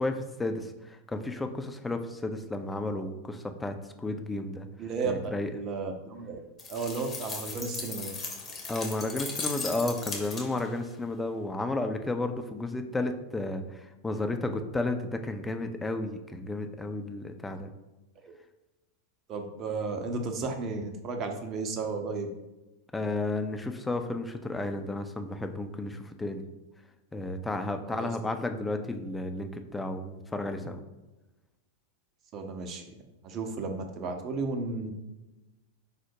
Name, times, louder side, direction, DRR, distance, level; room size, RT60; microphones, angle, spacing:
voice 1, 0.0-4.7 5.0-5.5 8.7-17.7 22.9-26.4 27.1-30.8, left 2 dB, 10° left, 6 dB, 0.4 m, -32 dB
voice 2, 4.8-6.4 6.7-8.1 18.2-18.3 19.3-22.3 27.9-28.1 32.3-32.8 33.2-34.9, right 4 dB, 35° right, 5 dB, 0.7 m, -33 dB
sound 1, 6.6-10.8, left 4 dB, 25° left, 0.8 m, -37 dB
5.1 x 2.0 x 4.6 m, 1.1 s
figure-of-eight pair, 90°, 0 cm